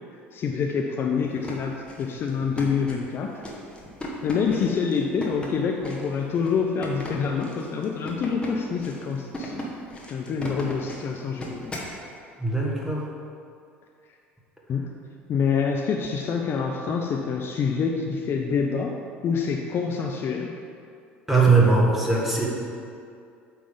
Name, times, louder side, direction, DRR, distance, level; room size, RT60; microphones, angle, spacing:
voice 1, 0.3-3.4 4.2-9.8 10.1-11.7 14.7-14.9 15.3-18.9 19.2-20.5, left 6 dB, 35° left, 1 dB, 0.5 m, -26 dB
sound 1, 1.2-12.0, equal, 15° left, 1.4 m, -37 dB
voice 2, 12.4-13.0 21.3-22.5, right 3 dB, 5° right, -4 dB, 1.6 m, -20 dB
8.7 x 3.4 x 5.2 m, 2.4 s
figure-of-eight pair, 65°, 6 cm